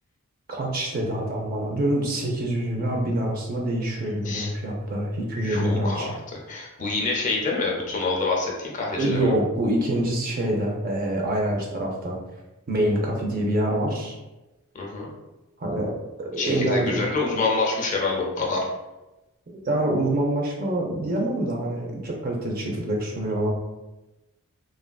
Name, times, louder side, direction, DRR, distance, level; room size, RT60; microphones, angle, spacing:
voice 1, 0.5-6.1 9.0-12.2 12.7-14.2 15.6-15.9 16.2-17.0 19.5-23.5, right 1 dB, 40° right, 0 dB, 0.5 m, -25 dB
voice 2, 5.4-9.3 14.7-15.1 16.4-18.7, left 3 dB, 35° left, -2 dB, 0.5 m, -27 dB
3.1 x 2.4 x 2.2 m, 1.0 s
head